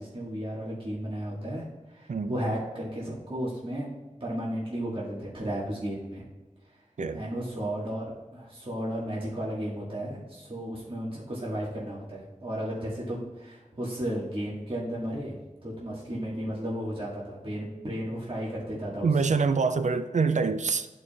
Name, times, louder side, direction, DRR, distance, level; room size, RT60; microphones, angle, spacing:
voice 1, 0.0-3.9 4.2-6.2 7.1-19.3, equal, 45° right, -6 dB, 1.7 m, -34 dB
voice 2, 19.0-20.9, right 5 dB, 65° right, 10 dB, 0.5 m, -25 dB
11.0 x 4.7 x 2.4 m, 1.2 s
wide cardioid pair, 50°, 13 cm